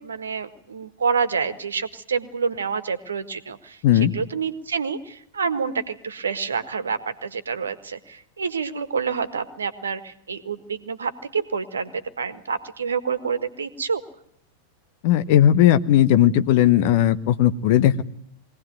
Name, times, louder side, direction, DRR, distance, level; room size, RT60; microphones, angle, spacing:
voice 1, 0.0-3.8 4.1-14.0, right 5 dB, 70° right, 12 dB, 1.5 m, -28 dB
voice 2, 15.0-18.0, left 11 dB, 50° left, 13 dB, 1.0 m, -17 dB
22.5 x 17.5 x 9.3 m, 0.73 s
figure-of-eight pair, 90°, 0 cm